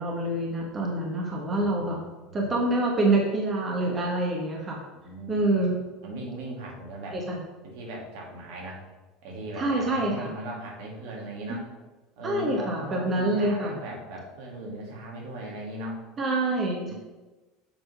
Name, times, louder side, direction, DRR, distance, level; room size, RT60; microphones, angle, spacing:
voice 1, 0.0-2.0 2.3-4.8 5.3-5.8 7.1-7.4 9.6-10.3 12.2-13.8 16.2-16.9, right 2 dB, 25° right, 0 dB, 1.2 m, -26 dB
voice 2, 1.5-1.9 2.4-2.5 5.0-5.3 6.0-7.2 7.6-8.8 9.2-11.7 12.2-16.0 16.8-16.9, right 1 dB, 75° right, -1 dB, 2.0 m, -38 dB
7.2 x 3.7 x 5.3 m, 1.2 s
supercardioid pair, 135°, 0 cm